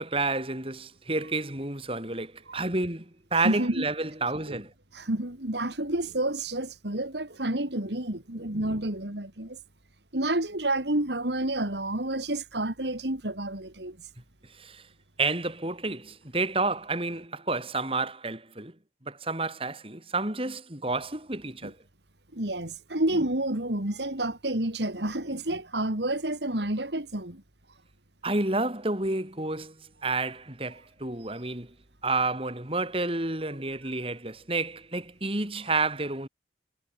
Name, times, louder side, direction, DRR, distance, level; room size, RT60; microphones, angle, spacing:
voice 1, 0.0-3.1 3.3-4.7 14.6-14.8 15.2-18.7 19.1-21.8 28.2-29.7 30.0-31.7 32.0-36.3, right 3 dB, 30° right, 3.4 m, -30 dB
voice 2, 3.4-3.9 4.5-4.6 4.9-9.6 10.1-14.0 21.6-21.7 22.3-27.4, right 1 dB, 75° right, 3.6 m, -29 dB
head